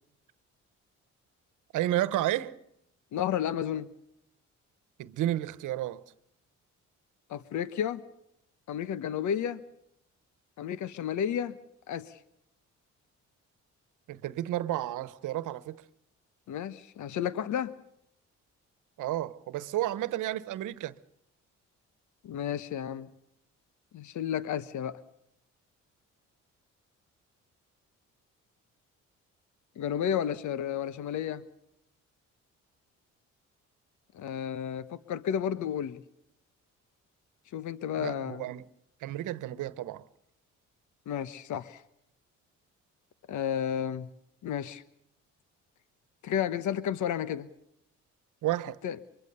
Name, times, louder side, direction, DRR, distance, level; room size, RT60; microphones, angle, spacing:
voice 1, 1.7-2.6 5.0-6.0 14.1-15.8 19.0-20.9 38.0-38.7 39.0-40.0 48.4-48.8, right 14 dB, 85° right, 1.2 m, -31 dB
voice 2, 3.1-3.9 7.3-8.0 8.7-9.6 10.6-11.6 11.9-12.2 16.5-17.7 22.2-23.1 23.9-25.0 29.8-31.4 34.1-36.0 37.5-38.4 41.1-41.8 43.3-44.1 44.4-44.8 46.2-47.5 48.8-49.0, left 9 dB, 75° left, 1.2 m, -32 dB
24.0 x 23.5 x 6.8 m
cardioid pair, 90°, 30 cm